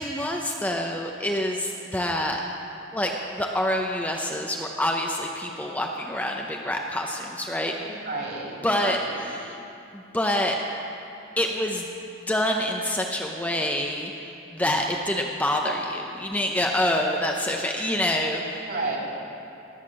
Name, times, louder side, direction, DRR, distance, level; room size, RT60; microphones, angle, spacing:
voice 1, 0.0-2.4 2.9-7.7 8.6-9.0 9.4-9.6 9.9-10.6 11.4-11.9 12.3-18.7, left 1 dB, 10° left, 1 dB, 0.6 m, -26 dB
voice 2, 7.8-9.1 18.5-19.1, right 2 dB, 55° right, -3 dB, 2.9 m, -32 dB
18.5 x 6.6 x 7.3 m, 2.8 s
head